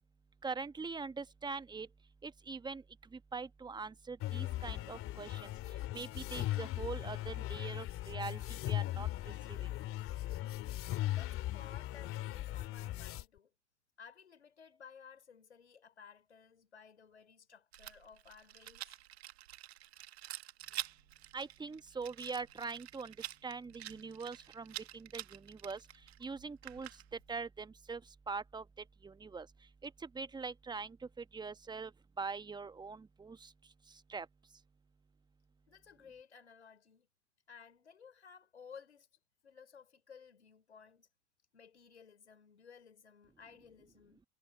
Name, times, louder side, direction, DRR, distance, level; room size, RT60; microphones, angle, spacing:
voice 1, 0.4-1.9 2.2-2.8 3.3-5.5 5.9-9.1 9.5-9.6 21.3-23.1 23.4-25.8 26.2-26.9 27.3-28.0 28.3-28.6 29.0-29.5 29.8-29.9 30.1-31.0 31.3-31.9 32.2-33.5 34.1-34.3, right 4 dB, 15° right, 1.2 m, -42 dB
sound 1, 4.2-13.2, left 15 dB, 40° left, 2.2 m, -38 dB
voice 2, 11.1-13.5 14.0-19.0 35.7-37.1 37.5-39.1 39.4-41.1 41.5-44.2, left 6 dB, 85° left, 4.8 m, -57 dB
Rattle, 17.7-27.3, right 13 dB, 70° right, 1.6 m, -48 dB
hypercardioid pair, 85°, 33 cm